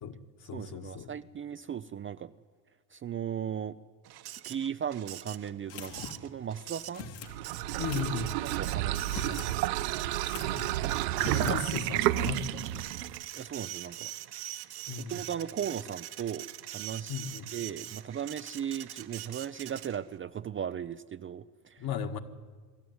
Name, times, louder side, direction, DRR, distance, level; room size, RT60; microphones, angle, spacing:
voice 1, 0.0-1.1 7.8-8.4 11.3-12.8 14.9-15.2 17.1-17.5 21.8-22.2, left 7 dB, 45° left, 7 dB, 1.9 m, -36 dB
voice 2, 0.5-2.3 2.9-3.8 4.5-7.1 8.4-10.5 13.3-14.1 15.0-16.5 16.7-17.1 17.5-21.9, right 9 dB, 25° right, 11 dB, 0.5 m, -37 dB
Printer, 4.0-20.2, right 13 dB, 50° right, 1.2 m, -44 dB
sound 1, 5.7-6.3 6.9-7.3 7.8-8.3 9.0-9.5 9.8-9.9 10.3-10.8 11.1-11.6, left 5 dB, 65° left, 2.4 m, -42 dB
sound 2, 7.2-13.3, right 15 dB, 75° right, 0.8 m, -31 dB
24.0 x 12.5 x 9.5 m, 1.5 s
hypercardioid pair, 80°, 49 cm